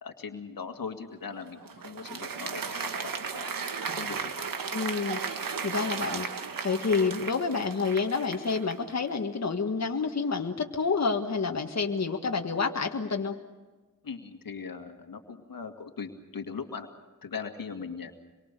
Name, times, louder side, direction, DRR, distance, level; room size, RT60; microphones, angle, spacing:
voice 1, 0.0-2.9 3.2-3.5 3.9-4.5 14.0-16.9 17.2-18.1, left 5 dB, 85° left, 5 dB, 2.1 m, -39 dB
Applause, 1.3-8.9, right 5 dB, 85° right, 1.7 m, -35 dB
voice 2, 4.7-5.2 5.6-6.3 6.6-13.4, left 4 dB, 50° left, 3 dB, 1.8 m, -28 dB
26.0 x 23.0 x 6.8 m, 1.3 s
wide cardioid pair, 70°, 33 cm